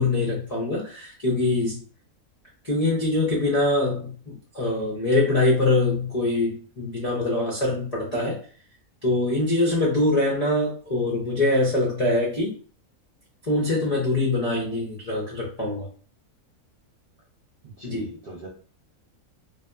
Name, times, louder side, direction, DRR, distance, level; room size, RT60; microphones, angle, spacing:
voice 1, 0.0-1.8 2.6-8.4 9.0-12.5 13.4-15.9 17.8-18.0, left 2 dB, 45° left, -5 dB, 0.5 m, -23 dB
voice 2, 17.6-18.5, right 3 dB, 60° right, -4 dB, 0.5 m, -40 dB
2.7 x 2.3 x 2.2 m, 0.41 s
omnidirectional pair, 1.6 m